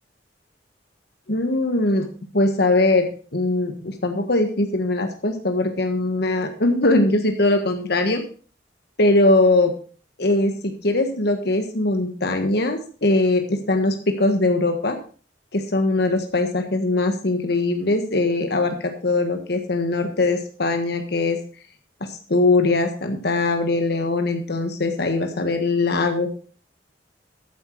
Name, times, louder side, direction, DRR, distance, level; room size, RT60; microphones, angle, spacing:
voice 1, 1.3-2.1 2.3-3.1 3.3-8.2 9.0-9.7 10.2-15.0 15.5-21.4 22.0-26.3, left 2 dB, 65° left, 6 dB, 1.5 m, -21 dB
13.5 x 8.2 x 4.6 m, 0.39 s
head